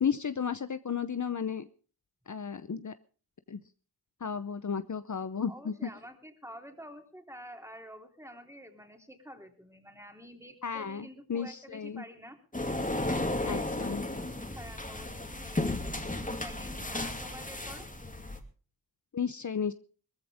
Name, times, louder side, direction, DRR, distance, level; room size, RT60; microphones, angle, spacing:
voice 1, 0.0-1.7 2.3-2.9 3.5-3.6 4.2-5.9 10.6-12.0 13.5-14.0 19.1-19.7, left 7 dB, 50° left, 12 dB, 0.8 m, -33 dB
voice 2, 5.5-12.4 12.9-16.0 16.4-17.9, equal, 5° right, 5 dB, 3.4 m, -49 dB
sound 1, 12.5-18.4, left 2 dB, 20° left, 2.6 m, -34 dB
20.0 x 14.5 x 3.6 m, 0.38 s
wide cardioid pair, 60°, 37 cm